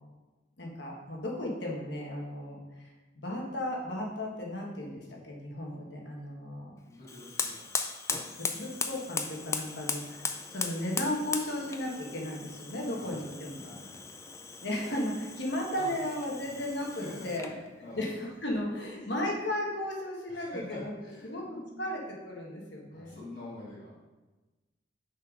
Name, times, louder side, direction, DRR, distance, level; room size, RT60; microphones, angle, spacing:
voice 1, 0.6-2.9 3.1-6.8 8.4-13.6 14.6-20.9 21.2-23.2, left 1 dB, 60° left, -1 dB, 1.5 m, -35 dB
voice 2, 6.8-7.7 12.9-13.2 13.6-14.0 15.8-15.9 16.5-16.6 16.9-18.0 19.1-19.2 20.3-21.8 22.9-23.9, left 2 dB, 40° left, -11 dB, 2.3 m, -46 dB
Fire, 7.0-17.6, left 4 dB, 15° left, 0.4 m, -38 dB
6.5 x 4.5 x 5.1 m, 1.2 s
head